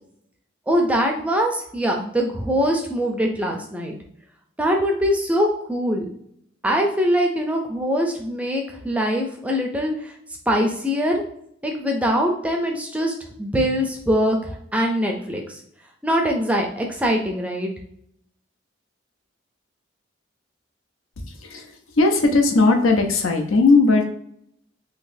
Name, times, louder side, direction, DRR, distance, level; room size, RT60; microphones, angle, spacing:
voice 1, 0.7-3.9 4.6-6.1 6.6-10.1 10.5-11.2 11.6-15.6 16.0-17.7, equal, 5° right, 1 dB, 0.4 m, -23 dB
voice 2, 21.4-24.0, left 3 dB, 90° left, 4 dB, 0.6 m, -18 dB
3.8 x 2.7 x 2.6 m, 0.69 s
head